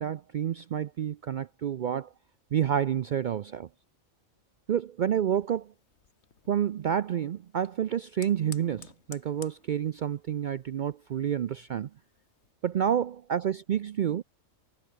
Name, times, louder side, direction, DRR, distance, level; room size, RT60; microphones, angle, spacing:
voice 1, 0.0-2.1 2.5-3.7 4.7-5.7 6.5-11.9 12.6-14.2, right 9 dB, 85° right, 0.4 m, -29 dB
Fire, 5.3-12.5, left 6 dB, 55° left, 1.7 m, -55 dB
omnidirectional pair, 1.4 m